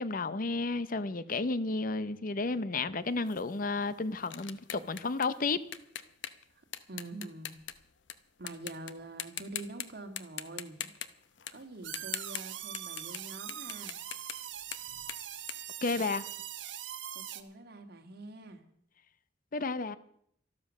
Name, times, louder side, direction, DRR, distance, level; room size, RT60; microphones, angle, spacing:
voice 1, 0.0-5.6 15.8-16.2 19.5-20.0, left 3 dB, 50° left, 0.7 m, -32 dB
sound 1, 3.3-8.1 8.5-8.9 9.2-9.9 10.2-13.2 13.5-16.5, left 10 dB, 90° left, 0.9 m, -42 dB
voice 2, 6.5-7.5 8.4-10.9 11.5-13.9 17.1-18.6, right 2 dB, 60° right, 2.0 m, -45 dB
sound 2, 11.8-17.4, right 11 dB, 90° right, 1.1 m, -42 dB
13.0 x 13.0 x 6.3 m
head